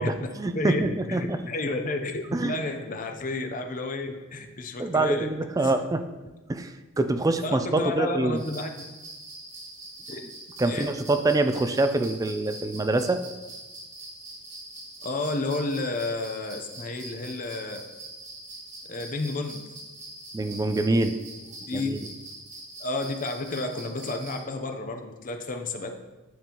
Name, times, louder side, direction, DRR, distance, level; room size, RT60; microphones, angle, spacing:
voice 1, 0.0-1.4 2.3-2.5 4.8-6.0 6.5-8.4 10.6-13.2 20.3-21.2 21.7-22.0, right 2 dB, 15° right, 9 dB, 0.3 m, -25 dB
voice 2, 0.5-5.3 5.6-5.7 7.4-8.7 10.1-10.3 10.6-10.9 15.0-17.9 18.8-19.7 21.6-21.9 22.8-26.0, left 2 dB, 40° left, 5 dB, 0.6 m, -31 dB
sound 1, 8.4-24.4, right 2 dB, 35° right, 2.0 m, -43 dB
9.3 x 5.4 x 2.9 m, 1.1 s
head